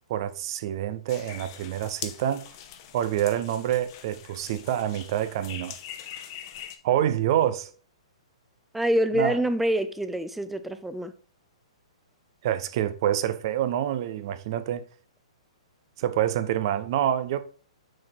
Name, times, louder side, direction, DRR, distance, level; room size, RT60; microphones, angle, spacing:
voice 1, 0.1-2.5 2.9-5.7 6.8-7.7 9.1-9.4 12.4-14.9 16.0-17.4, right 11 dB, 50° right, 0.7 m, -27 dB
sound 1, 1.1-6.8, left 10 dB, 45° left, 0.9 m, -42 dB
voice 2, 8.7-11.1, right 1 dB, 5° right, 0.6 m, -26 dB
6.2 x 4.5 x 4.4 m
figure-of-eight pair, 120°, 3 cm